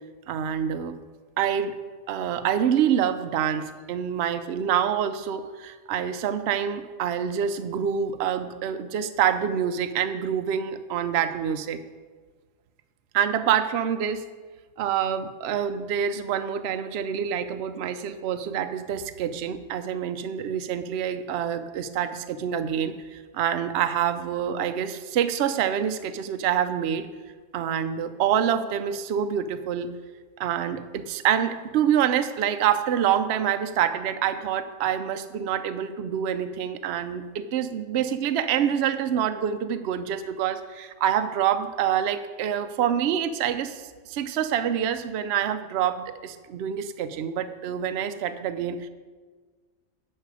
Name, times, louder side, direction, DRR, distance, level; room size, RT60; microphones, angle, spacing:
voice 1, 0.3-1.0 1.4-1.8 2.1-11.8 13.1-14.2 14.8-27.1 27.5-29.9 30.4-43.8 44.1-48.9, right 9 dB, 65° right, 9 dB, 0.8 m, -26 dB
10.5 x 6.5 x 4.8 m, 1.4 s
omnidirectional pair, 1.2 m